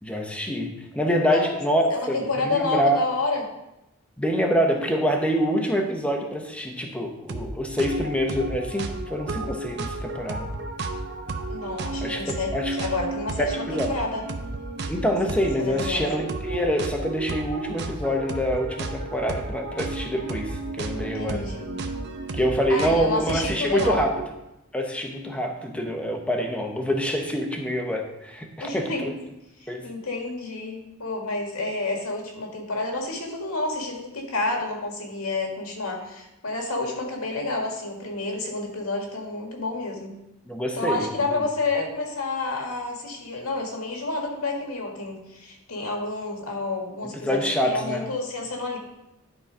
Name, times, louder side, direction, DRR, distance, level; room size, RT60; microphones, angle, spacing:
voice 1, 0.0-3.0 4.2-10.5 12.0-12.7 13.4-13.9 14.9-21.4 22.3-24.2 24.7-29.1 29.7-29.9 40.5-41.4 47.1-48.0, equal, 5° left, 3 dB, 0.8 m, -26 dB
voice 2, 1.1-1.6 1.9-3.4 11.5-14.2 15.6-16.1 20.9-21.8 22.7-24.0 28.6-29.1 29.6-40.1 40.7-48.8, left 3 dB, 80° left, 1 dB, 1.8 m, -29 dB
sound 1, 7.3-7.5 7.8-24.3, right 3 dB, 50° right, 0.7 m, -33 dB
11.0 x 3.9 x 5.0 m, 0.91 s
head